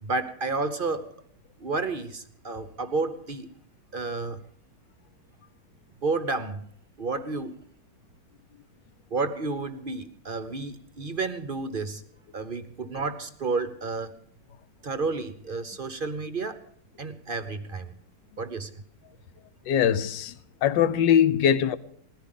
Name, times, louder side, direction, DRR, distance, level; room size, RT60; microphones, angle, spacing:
voice 1, 0.0-1.1 1.6-3.5 3.9-4.4 6.0-6.6 7.0-7.5 9.1-12.0 12.3-14.1 14.8-16.6 17.0-17.9 18.4-18.7, right 3 dB, 45° right, 0.7 m, -31 dB
voice 2, 19.6-21.8, left 9 dB, 70° left, 1.5 m, -22 dB
19.5 x 14.5 x 3.9 m
omnidirectional pair, 2.1 m